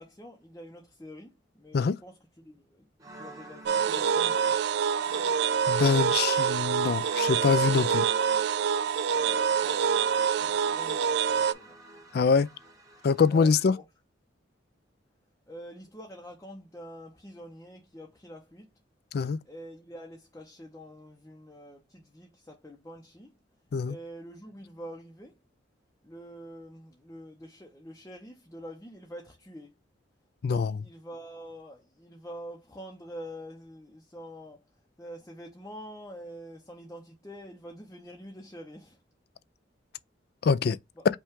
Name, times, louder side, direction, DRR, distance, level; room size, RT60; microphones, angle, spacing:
voice 1, 0.0-2.9 3.2-4.5 9.1-11.8 13.3-13.8 15.5-18.7 19.4-23.3 23.8-25.3 26.0-29.7 30.4-34.6 35.0-39.0 41.0-41.1, equal, 15° left, 0.7 m, -46 dB
sound 1, 3.0-13.4, right 2 dB, 20° right, 1.1 m, -46 dB
sound 2, 3.7-11.5, right 7 dB, 55° right, 0.3 m, -26 dB
voice 2, 5.7-8.1 12.1-12.5 13.0-13.7 19.1-19.4 23.7-24.0 30.4-30.7 40.4-40.8, left 5 dB, 50° left, 0.3 m, -24 dB
5.4 x 2.4 x 3.5 m
head